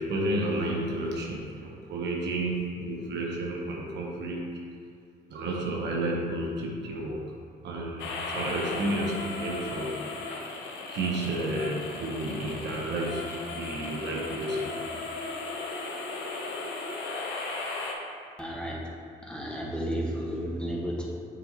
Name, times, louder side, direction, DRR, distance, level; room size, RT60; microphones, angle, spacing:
voice 1, 0.0-4.6 5.3-7.3 7.6-10.0 10.9-14.8, right 1 dB, 75° right, -1 dB, 1.1 m, -31 dB
sound 1, 8.0-17.9, left 3 dB, 85° left, 1.0 m, -36 dB
voice 2, 18.4-18.8 19.2-21.1, equal, 5° left, -3 dB, 1.6 m, -32 dB
7.1 x 7.0 x 3.1 m, 2.3 s
cardioid pair, 75°, 18 cm